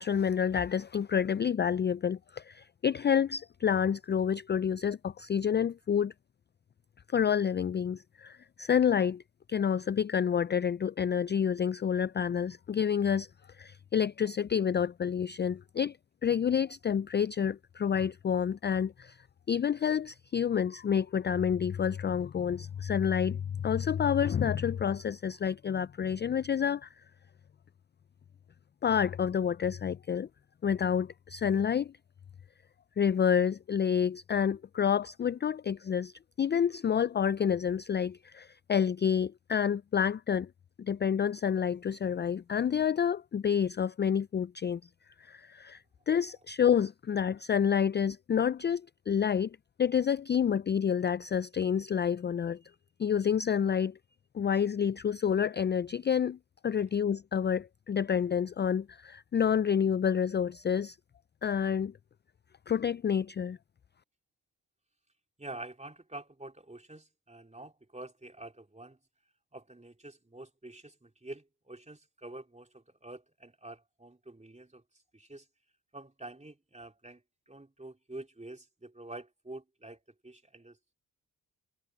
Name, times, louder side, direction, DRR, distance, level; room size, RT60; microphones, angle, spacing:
voice 1, 0.0-6.1 7.1-9.2 9.5-13.3 13.6-16.0 16.2-19.2 19.5-26.9 28.8-30.3 30.6-31.9 33.0-36.1 36.4-40.5 40.8-44.8 45.2-45.8 46.1-52.6 53.0-54.0 54.3-56.4 56.6-61.0 61.4-61.9 62.7-63.6, left 8 dB, 30° left, 0.4 m, -28 dB
voice 2, 65.4-69.0 69.5-74.8 75.1-75.5 75.9-77.2 77.5-80.8, right 2 dB, 20° right, 3.4 m, -47 dB
supercardioid pair, 50°, 38 cm